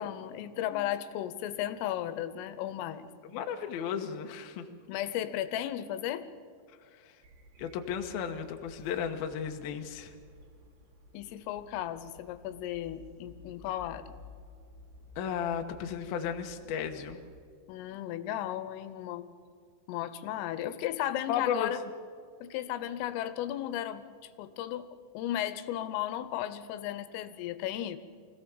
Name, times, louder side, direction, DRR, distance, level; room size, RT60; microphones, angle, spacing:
voice 1, 0.0-3.1 4.9-6.3 11.1-14.1 17.7-19.3 19.9-21.8 22.4-24.0 24.4-24.9 25.2-28.0, left 12 dB, 85° left, 12 dB, 3.5 m, -35 dB
voice 2, 3.2-4.7 6.9-7.2 7.6-10.1 15.2-17.2 21.3-21.7, left 8 dB, 70° left, 5 dB, 2.4 m, -34 dB
sound 1, 7.2-17.4, left 1 dB, 60° right, 4.7 m, -54 dB
25.0 x 17.0 x 7.2 m, 2.2 s
omnidirectional pair, 5.7 m